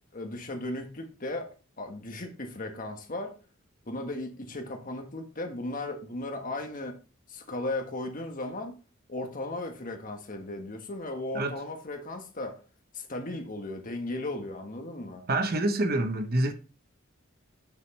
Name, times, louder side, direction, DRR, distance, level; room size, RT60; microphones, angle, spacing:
voice 1, 0.1-3.3 3.8-7.0 7.3-8.7 9.1-12.6 12.9-15.2, left 2 dB, 40° left, 1.4 m, -36 dB
voice 2, 15.3-16.5, right 2 dB, 50° right, 0.9 m, -26 dB
8.5 x 6.2 x 3.3 m
head